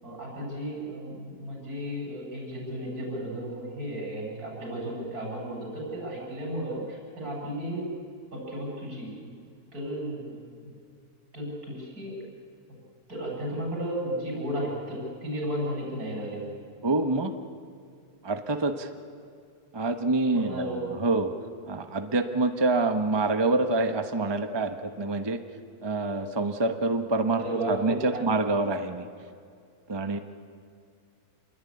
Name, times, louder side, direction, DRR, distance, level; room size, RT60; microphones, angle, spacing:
voice 1, 0.0-7.9 8.3-9.3 9.7-10.4 10.6-10.7 11.3-12.2 13.1-16.4 20.3-20.9 27.4-28.3, right 1 dB, 80° right, -2 dB, 8.3 m, -34 dB
voice 2, 16.8-17.3 18.2-18.9 19.7-21.3 21.7-25.4 25.8-29.1 29.9-30.2, right 3 dB, 20° right, 7 dB, 1.1 m, -26 dB
28.0 x 21.0 x 9.8 m, 2.3 s
omnidirectional pair, 1.6 m